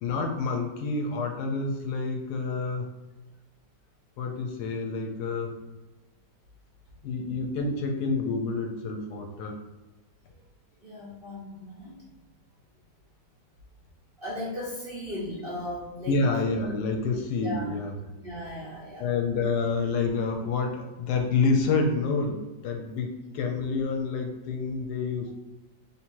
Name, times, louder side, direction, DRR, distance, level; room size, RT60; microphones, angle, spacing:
voice 1, 0.0-2.9 4.2-5.6 7.0-9.6 16.1-17.9 19.0-25.4, left 4 dB, 75° left, 2 dB, 1.1 m, -28 dB
voice 2, 10.8-12.0 14.2-16.2 17.4-17.7 18.2-19.1, left 1 dB, 45° right, -5 dB, 0.8 m, -36 dB
3.5 x 2.9 x 4.4 m, 1.1 s
omnidirectional pair, 1.9 m